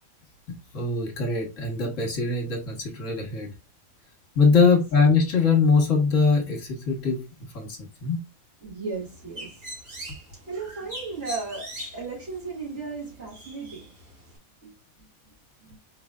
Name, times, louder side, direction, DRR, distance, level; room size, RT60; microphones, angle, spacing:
voice 1, 0.7-3.5 4.3-7.2 7.5-8.2, left 4 dB, 65° left, 1.5 m, -22 dB
voice 2, 8.6-9.5 10.5-13.9 14.6-14.7 15.7-15.8, right 4 dB, 55° right, 2.7 m, -35 dB
Bird, 8.9-14.4, equal, 85° right, 2.9 m, -42 dB
4.6 x 3.2 x 2.4 m
omnidirectional pair, 1.5 m